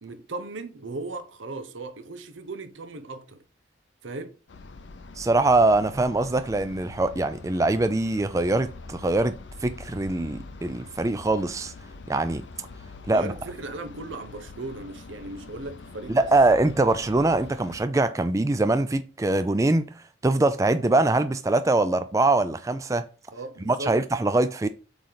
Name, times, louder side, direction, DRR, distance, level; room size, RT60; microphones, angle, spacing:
voice 1, 0.0-3.4 4.0-4.3 13.1-16.3 23.3-24.0, right 2 dB, 85° right, 0.8 m, -37 dB
sound 1, 4.5-17.9, left 3 dB, 70° left, 0.6 m, -44 dB
voice 2, 5.2-9.4 9.6-11.7 12.1-12.4 13.1-13.3 16.1-19.9 20.2-23.0 23.7-24.7, right 2 dB, 15° right, 0.3 m, -23 dB
8.0 x 3.2 x 4.0 m
head